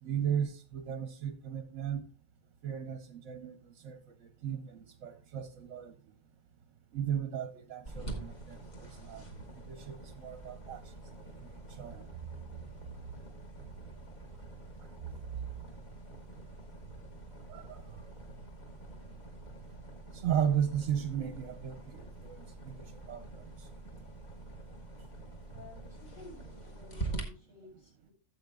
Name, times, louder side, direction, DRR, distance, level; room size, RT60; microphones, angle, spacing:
voice 1, 0.0-2.1 2.6-6.0 6.9-12.3 13.1-13.2 14.8-15.1 15.3-15.7 16.9-17.0 17.5-18.4 18.8-19.0 19.7-19.8 20.1-24.6 25.0-25.1, right 8 dB, 65° right, 1.0 m, -37 dB
sound 1, 7.8-27.2, right 2 dB, 30° left, 1.5 m, -46 dB
voice 2, 25.5-28.1, left 3 dB, 50° left, 5.2 m, -53 dB
14.0 x 7.7 x 2.3 m
omnidirectional pair, 1.6 m